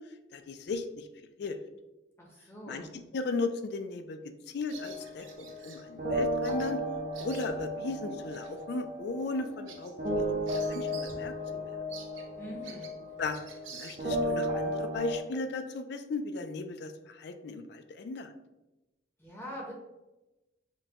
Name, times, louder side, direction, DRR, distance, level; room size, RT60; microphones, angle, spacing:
voice 1, 0.3-1.1 1.4-1.6 2.7-2.9 3.1-4.2 4.5-6.8 7.2-11.7 13.2-13.4 13.7-18.3, left 3 dB, 60° left, 8 dB, 0.3 m, -36 dB
voice 2, 2.2-2.9 12.4-12.9 19.2-19.7, equal, 10° left, -3 dB, 0.7 m, -43 dB
sound 1, 4.7-15.2, equal, 45° right, 0.6 m, -34 dB
Bird vocalization bird call bird song, 4.7-5.8 6.4-6.7 7.0-7.8 8.3-8.5 8.9-9.0 9.4-11.2 11.5-11.6 11.9-14.3, right 6 dB, 85° right, 0.7 m, -49 dB
5.2 x 2.2 x 2.8 m, 1.0 s
head